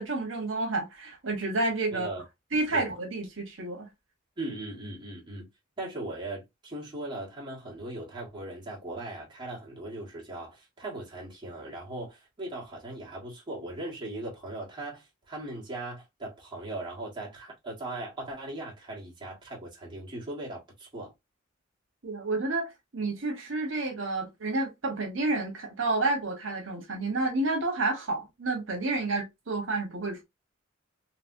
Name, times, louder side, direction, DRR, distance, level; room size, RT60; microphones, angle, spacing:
voice 1, 0.0-2.1 2.5-3.9 22.0-30.2, right 2 dB, 75° right, 1.1 m, -30 dB
voice 2, 1.9-2.2 2.7-2.9 4.4-5.5 5.8-21.1, right 2 dB, 25° right, 1.4 m, -39 dB
3.2 x 2.9 x 2.6 m
head